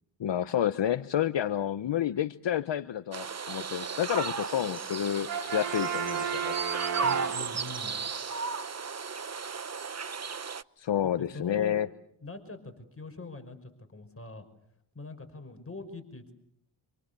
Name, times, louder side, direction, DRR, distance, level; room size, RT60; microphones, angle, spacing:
voice 1, 0.2-6.5 10.8-11.9, left 10 dB, 60° left, 11 dB, 1.1 m, -29 dB
sound 1, 3.1-10.6, right 5 dB, 35° right, 1.0 m, -35 dB
Brass instrument, 5.3-7.9, right 8 dB, 65° right, 6.3 m, -33 dB
voice 2, 7.0-8.0 11.0-11.8 12.2-14.5 14.9-16.3, left 3 dB, 30° left, 6 dB, 5.7 m, -43 dB
28.5 x 27.5 x 7.0 m, 0.72 s
cardioid pair, 65°, 48 cm